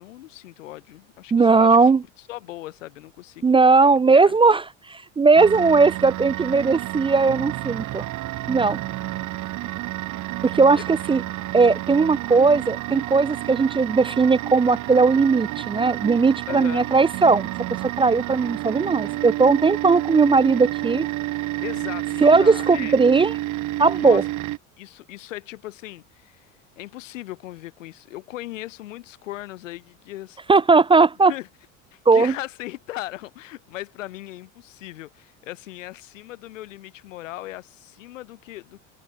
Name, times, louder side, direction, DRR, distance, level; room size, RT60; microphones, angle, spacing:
voice 1, 0.0-1.9 2.3-3.6 4.1-4.4 9.0-9.3 10.7-10.9 16.5-17.0 21.4-22.9 23.9-24.2 24.8-30.4 31.3-31.5 31.9-38.8, left 16 dB, 90° left, 2.4 m, -38 dB
voice 2, 1.3-2.0 3.4-8.0 8.5-8.8 10.4-11.2 11.5-17.5 18.0-21.1 22.2-23.3 23.8-24.2 30.5-31.3 32.1-32.3, right 4 dB, 15° right, 0.4 m, -18 dB
sound 1, 5.3-24.6, right 17 dB, 50° right, 1.4 m, -30 dB
supercardioid pair, 95°, 37 cm